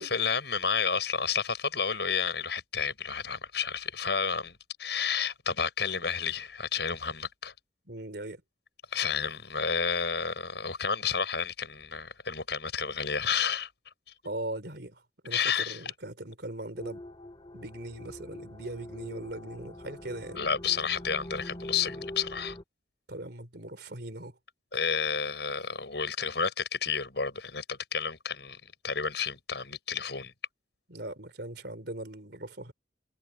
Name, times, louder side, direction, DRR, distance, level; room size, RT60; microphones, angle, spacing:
voice 1, 0.0-7.5 8.9-13.7 15.3-15.9 20.3-22.6 24.7-30.3, left 6 dB, 70° left, 6.4 m, -31 dB
voice 2, 7.9-8.4 14.2-17.0 17.5-20.4 23.1-24.4 30.9-32.7, right 1 dB, 65° right, 3.5 m, -40 dB
sound 1, 16.8-22.6, left 1 dB, 25° left, 2.3 m, -43 dB
head